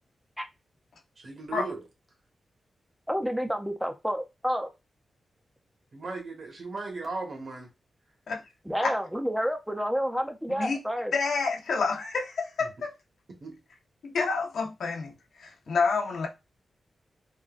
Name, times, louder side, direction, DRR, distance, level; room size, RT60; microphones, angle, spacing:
voice 1, 1.2-1.8 5.9-7.7 12.6-12.7 13.4-13.6, right 3 dB, 50° right, 1.1 m, -37 dB
voice 2, 3.1-4.7 8.7-11.1, equal, ahead, 0.5 m, -29 dB
voice 3, 11.1-12.9 14.0-15.1 15.4-16.3, left 4 dB, 80° left, 0.8 m, -28 dB
3.7 x 2.2 x 2.4 m
wide cardioid pair, 140°, 0 cm